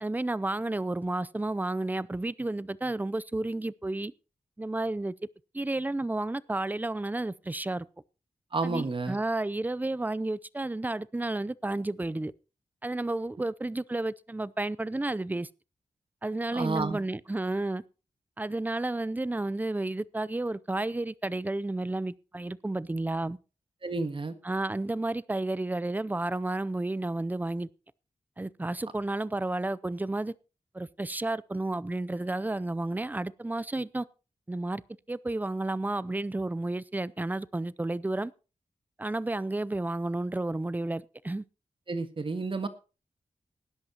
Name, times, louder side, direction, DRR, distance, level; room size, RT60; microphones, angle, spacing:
voice 1, 0.0-4.1 4.6-5.1 5.5-7.9 8.6-12.3 12.8-15.5 16.2-17.8 18.4-23.4 24.4-27.7 28.4-30.3 30.7-34.0 34.5-34.8 35.1-38.3 39.0-41.4, right 2 dB, 15° right, 0.5 m, -31 dB
voice 2, 8.5-9.2 16.5-17.0 23.8-24.3 41.9-42.7, right 3 dB, 45° right, 1.6 m, -30 dB
19.0 x 10.5 x 2.9 m
wide cardioid pair, 80°, 13 cm